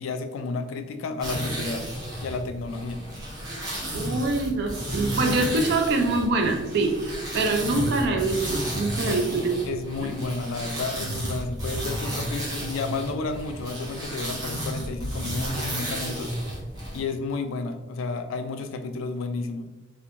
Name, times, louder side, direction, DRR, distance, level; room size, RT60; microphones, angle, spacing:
voice 1, 0.0-1.8 2.2-3.0 9.0-9.4 9.6-16.3 16.9-19.7, left 3 dB, 85° left, 8 dB, 0.3 m, -31 dB
sound 1, 1.2-17.0, right 1 dB, 20° right, 0.7 m, -32 dB
voice 2, 3.9-9.6 10.0-10.1, right 2 dB, 60° right, 4 dB, 0.4 m, -25 dB
3.0 x 2.1 x 2.5 m, 1.1 s
head